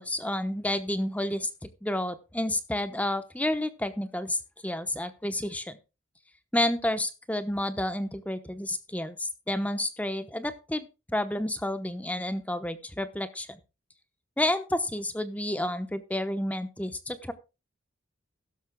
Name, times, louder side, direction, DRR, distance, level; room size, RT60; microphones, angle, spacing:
voice 1, 0.0-1.5 1.8-5.8 6.5-13.6 14.4-17.3, left 1 dB, 5° left, 11 dB, 0.9 m, -30 dB
15.5 x 13.0 x 2.2 m, 0.28 s
head